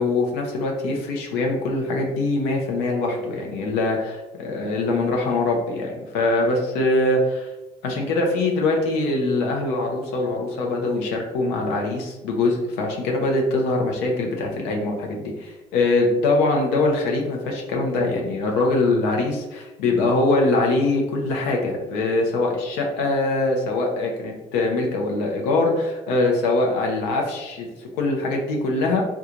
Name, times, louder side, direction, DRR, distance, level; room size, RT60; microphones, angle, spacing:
voice 1, 0.0-7.5 7.8-29.0, left 2 dB, 90° left, 1 dB, 0.6 m, -23 dB
3.0 x 2.3 x 3.7 m, 1.1 s
supercardioid pair, 70°, 16 cm